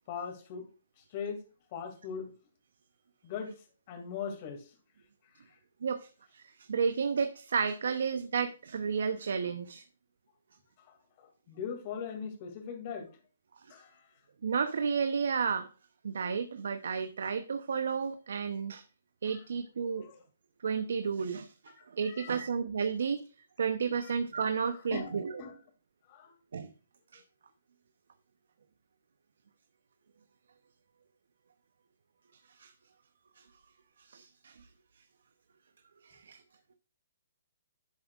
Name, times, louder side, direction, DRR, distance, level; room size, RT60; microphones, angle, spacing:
voice 1, 0.1-0.7 1.1-1.4 1.7-2.3 3.2-3.5 3.9-4.6 10.8-13.1 13.7-14.0 19.3-19.4 19.8-20.2 21.8-21.9 22.1-22.4 24.0-24.1 24.9-25.6 26.1-26.3, left 6 dB, 40° left, 5 dB, 2.4 m, -40 dB
voice 2, 6.7-9.8 14.4-15.7 16.0-18.8 19.2-20.1 20.6-21.5 21.9-23.2 23.6-25.3 26.5-26.7 27.1-27.2 32.6-32.7 33.4-33.5 34.0-34.5 36.0-36.4, right 6 dB, 70° right, 9 dB, 0.8 m, -32 dB
11.0 x 7.2 x 2.5 m, 0.35 s
hypercardioid pair, 150°, 0 cm